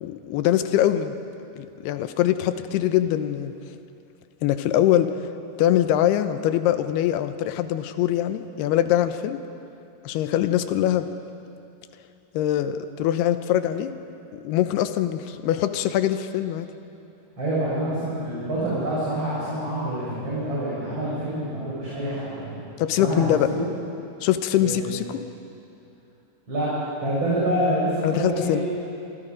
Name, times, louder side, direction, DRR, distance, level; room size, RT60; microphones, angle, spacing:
voice 1, 0.0-1.1 1.6-3.5 4.4-5.1 5.6-9.4 10.0-11.1 12.3-13.9 14.3-16.7 22.8-23.5 24.2-25.0 28.0-28.6, left 12 dB, 80° left, 10 dB, 2.9 m, -23 dB
voice 2, 17.4-22.6 23.0-23.7 24.6-24.9 26.5-26.7 27.0-28.6, right 1 dB, 30° right, -9 dB, 6.2 m, -27 dB
27.5 x 24.5 x 5.2 m, 2.7 s
omnidirectional pair, 4.6 m